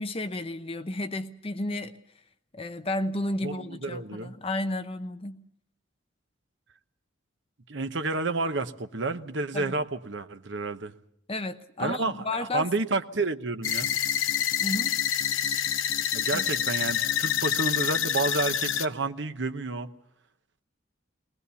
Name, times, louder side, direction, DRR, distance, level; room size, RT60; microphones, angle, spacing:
voice 1, 0.0-2.0 2.5-5.4 9.5-9.7 11.3-12.7 14.6-15.0 16.3-16.4, left 2 dB, 30° left, 8 dB, 0.9 m, -32 dB
voice 2, 3.4-4.3 7.7-10.9 11.8-13.9 16.1-19.9, right 3 dB, 65° right, 9 dB, 1.0 m, -30 dB
sound 1, 13.6-18.9, left 9 dB, 90° left, 0.9 m, -27 dB
20.5 x 20.0 x 7.0 m, 0.75 s
head